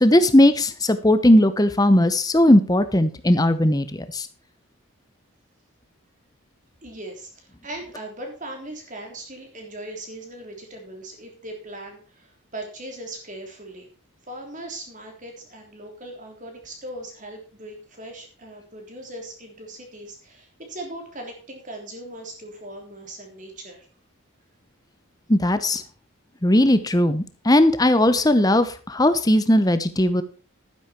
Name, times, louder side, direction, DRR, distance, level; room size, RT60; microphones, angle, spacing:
voice 1, 0.0-3.9 4.1-4.3 25.3-25.8 26.4-30.2, left 1 dB, 15° left, 11 dB, 0.9 m, -18 dB
voice 2, 6.8-13.9 14.2-23.9, right 1 dB, 35° right, 2 dB, 3.6 m, -39 dB
11.5 x 10.0 x 4.4 m, 0.37 s
head